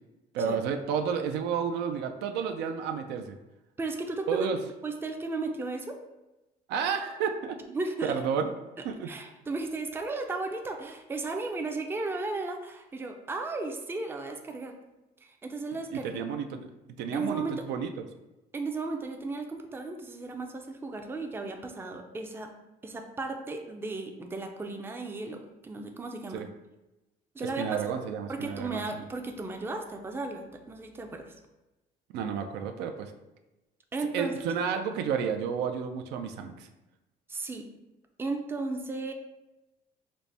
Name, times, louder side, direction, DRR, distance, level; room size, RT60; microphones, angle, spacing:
voice 1, 0.3-3.4 4.3-4.6 6.7-8.5 8.8-9.1 15.9-16.7 17.0-18.1 26.3-26.5 27.4-29.0 32.1-33.1 34.1-36.7, right 6 dB, 85° right, 6 dB, 0.4 m, -31 dB
voice 2, 3.8-4.5 4.8-6.0 7.7-8.1 9.1-14.7 15.2-16.2 17.1-17.6 18.5-22.5 22.8-26.4 27.3-31.3 33.9-34.4 37.3-37.6 38.2-39.1, right 3 dB, 15° right, 4 dB, 0.4 m, -35 dB
4.0 x 2.1 x 3.3 m, 1.0 s
cardioid pair, 110°, 17 cm